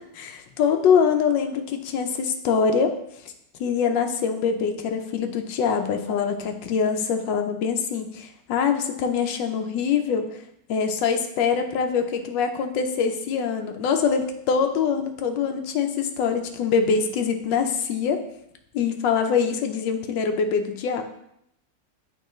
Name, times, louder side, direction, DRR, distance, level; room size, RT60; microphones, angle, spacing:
voice 1, 0.1-2.9 3.6-10.2 10.7-18.2 18.7-21.0, left 6 dB, 90° left, 5 dB, 1.4 m, -24 dB
8.3 x 3.9 x 3.1 m, 0.74 s
omnidirectional pair, 1.9 m